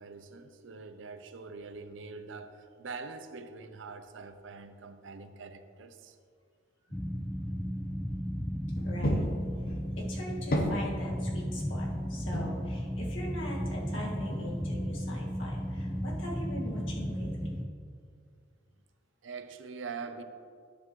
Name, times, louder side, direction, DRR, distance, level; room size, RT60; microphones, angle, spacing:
voice 1, 0.0-6.2 19.2-20.2, right 4 dB, 75° right, 9 dB, 0.5 m, -44 dB
sound 1, 6.9-17.6, equal, 5° left, 0.4 m, -34 dB
voice 2, 8.8-9.3 9.7-17.5, equal, 85° left, -3 dB, 1.8 m, -41 dB
sound 2, 8.8-10.0 10.3-11.7 12.3-12.7 13.4-14.7 15.3-15.4 15.8-16.4, equal, 50° left, 0.8 m, -34 dB
10.0 x 7.5 x 3.1 m, 2.2 s
head